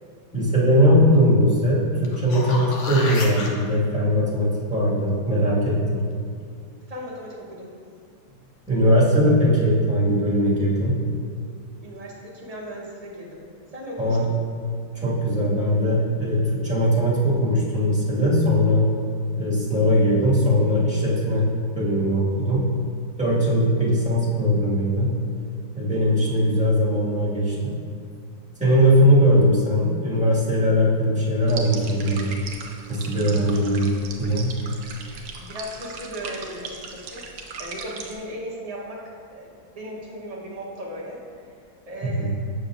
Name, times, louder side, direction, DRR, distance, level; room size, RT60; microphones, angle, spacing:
voice 1, 0.3-6.0 8.7-11.0 14.0-14.3 14.9-18.9 19.3-21.4 21.7-22.7 23.2-25.2 25.7-27.8 28.6-32.4 32.9-33.9 34.2-34.5 42.0-42.4, equal, 5° right, -8 dB, 1.4 m, -20 dB
sound 1, 2.0-3.5 8.3-8.4, left 2 dB, 55° left, 0.9 m, -31 dB
voice 2, 6.9-7.7 11.8-13.5 13.7-14.3 23.7-23.8 33.5-33.7 35.4-37.3 37.6-41.5 41.9-42.4, equal, 30° right, -4 dB, 0.7 m, -37 dB
sound 2, 31.5-38.2, right 4 dB, 70° right, 1.1 m, -38 dB
6.8 x 6.8 x 2.4 m, 2.2 s
omnidirectional pair, 1.8 m